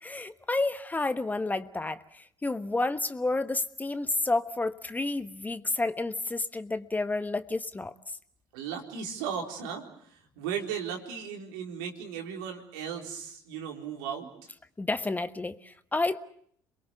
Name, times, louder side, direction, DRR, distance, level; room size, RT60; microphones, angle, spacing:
voice 1, 0.0-7.9 14.8-16.2, left 2 dB, 15° left, 11 dB, 1.3 m, -30 dB
voice 2, 8.5-14.3, right 7 dB, 80° right, 2 dB, 4.2 m, -36 dB
27.5 x 22.5 x 7.0 m, 0.65 s
hypercardioid pair, 65°, 10 cm